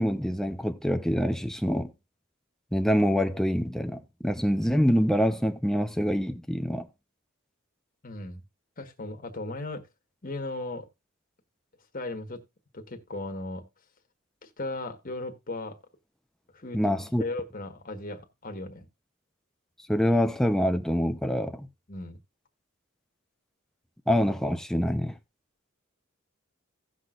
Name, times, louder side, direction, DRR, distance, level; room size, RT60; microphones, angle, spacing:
voice 1, 0.0-1.9 2.7-6.9 16.7-17.2 19.9-21.7 24.1-25.1, equal, ahead, 0.8 m, -25 dB
voice 2, 8.0-8.4 8.8-9.9 10.2-10.9 11.9-12.4 12.7-13.7 14.4-15.8 16.5-16.9 17.2-18.8 21.9-22.2, left 2 dB, 40° left, 1.6 m, -36 dB
17.0 x 6.1 x 2.5 m
head